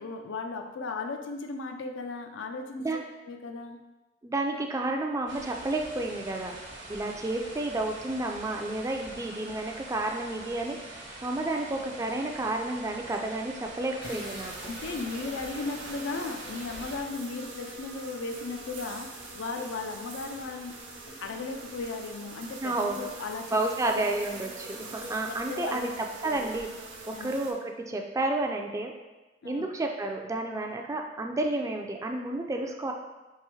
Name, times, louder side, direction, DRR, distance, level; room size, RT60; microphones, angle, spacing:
voice 1, 0.0-2.9 3.3-3.8 11.5-11.7 14.6-20.8 21.2-24.0 25.3-25.9 26.2-26.5 27.1-27.3 29.4-29.7, left 3 dB, 80° left, 5 dB, 0.4 m, -36 dB
voice 2, 4.2-6.6 6.9-14.5 22.6-23.0 23.5-25.9 26.2-26.7 27.1-28.9 29.4-32.9, right 2 dB, 15° right, 2 dB, 0.3 m, -31 dB
sound 1, 5.3-17.0, right 2 dB, 70° right, 1.1 m, -44 dB
sound 2, 13.5-25.9, left 1 dB, 55° left, 0.7 m, -51 dB
sound 3, 14.0-27.5, right 3 dB, 90° right, 0.7 m, -44 dB
4.7 x 2.9 x 3.1 m, 1.1 s
head